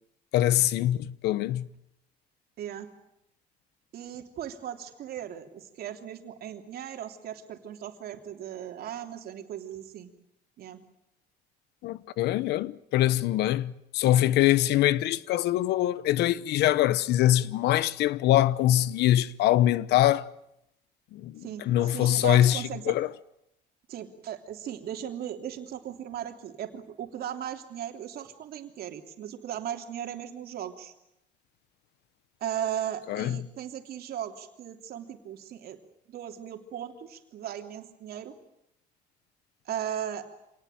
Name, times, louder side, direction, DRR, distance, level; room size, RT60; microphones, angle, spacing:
voice 1, 0.3-1.7 11.8-20.3 21.1-23.1 33.1-33.4, left 13 dB, 80° left, 1.0 m, -24 dB
voice 2, 2.6-2.9 3.9-10.1 10.6-10.8 21.4-23.0 23.9-30.9 32.4-35.8 36.1-38.3 39.6-40.3, right 10 dB, 65° right, 3.2 m, -37 dB
26.0 x 19.0 x 9.2 m
cardioid pair, 110°, 17 cm